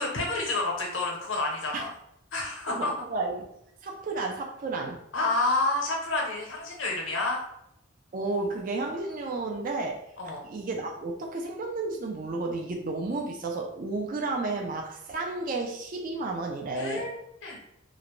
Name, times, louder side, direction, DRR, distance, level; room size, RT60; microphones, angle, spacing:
voice 1, 0.0-1.9 2.3-2.9 5.1-7.4 10.2-10.4 16.7-17.6, left 2 dB, 80° left, -1 dB, 0.8 m, -29 dB
voice 2, 2.8-3.5 3.8-5.0 8.1-10.0 10.4-17.1, right 3 dB, 45° right, 1 dB, 0.3 m, -32 dB
2.5 x 2.1 x 2.9 m, 0.76 s
head